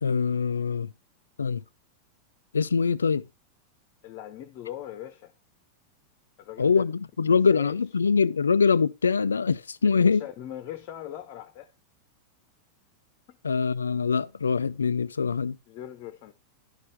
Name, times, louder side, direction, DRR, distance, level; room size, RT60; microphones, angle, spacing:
voice 1, 0.0-0.9 1.4-1.6 2.5-3.2 6.6-10.2 13.4-15.6, left 5 dB, 75° left, 0.4 m, -23 dB
voice 2, 4.0-5.3 6.4-6.8 7.3-7.8 9.8-11.7 13.3-13.4 15.7-16.3, left 12 dB, 45° left, 1.0 m, -40 dB
10.5 x 6.5 x 3.3 m
figure-of-eight pair, 90°, 0 cm